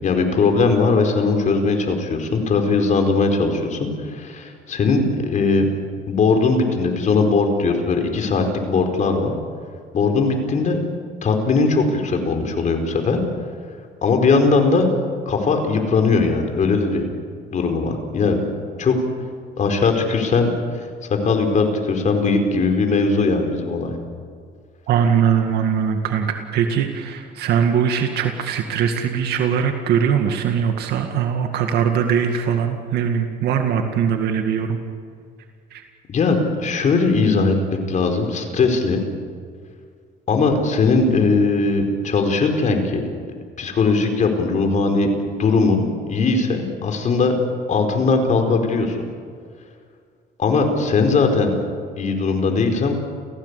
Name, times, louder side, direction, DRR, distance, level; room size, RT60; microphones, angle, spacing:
voice 1, 0.0-5.7 6.1-9.3 9.9-10.8 11.2-13.2 14.0-14.9 15.3-17.0 17.5-18.4 18.8-19.0 19.6-20.5 21.1-24.0 36.1-37.5 37.9-39.0 40.3-43.0 43.6-47.3 47.7-49.0 50.4-51.5 52.0-52.9, left 4 dB, 45° left, 4 dB, 4.8 m, -19 dB
voice 2, 24.9-34.8 35.7-35.8, right 7 dB, 75° right, 5 dB, 2.1 m, -21 dB
29.5 x 16.5 x 8.4 m, 2.1 s
cardioid pair, 110°, 17 cm